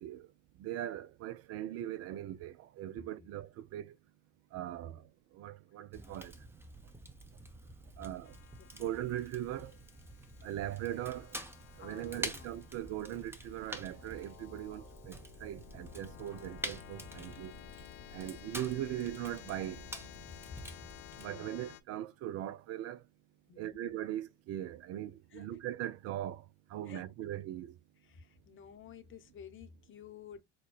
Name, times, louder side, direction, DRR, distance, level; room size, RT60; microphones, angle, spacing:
voice 1, 0.6-4.0 4.5-5.0 5.3-6.3 8.0-8.4 8.8-9.8 10.4-11.4 11.8-17.5 18.1-19.9 21.2-23.0 23.6-27.7, right 12 dB, 45° right, 0.4 m, -40 dB
Fire, 5.9-21.3, right 1 dB, 5° right, 0.7 m, -47 dB
sound 1, 8.2-21.8, left 10 dB, 60° left, 0.6 m, -54 dB
voice 2, 8.6-9.0 11.8-12.5 21.2-21.6 23.5-23.8 25.3-25.5 26.8-27.0 28.0-30.4, left 7 dB, 35° left, 0.9 m, -52 dB
6.0 x 2.1 x 2.3 m
figure-of-eight pair, 65°, 36 cm